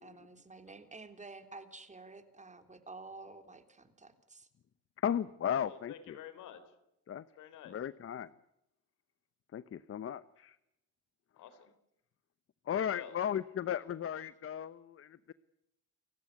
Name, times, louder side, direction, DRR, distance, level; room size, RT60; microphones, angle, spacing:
voice 1, 0.0-4.5, right 3 dB, 25° right, 8 dB, 3.4 m, -51 dB
voice 2, 5.0-6.2 7.1-7.2 7.7-8.3 9.5-10.6 12.7-15.3, left 9 dB, 50° left, 15 dB, 0.9 m, -35 dB
voice 3, 5.6-6.6 7.4-7.8 11.4-11.7 12.9-13.2, left 9 dB, 90° left, 11 dB, 3.9 m, -49 dB
29.5 x 16.0 x 9.5 m, 0.85 s
cardioid pair, 90°, 30 cm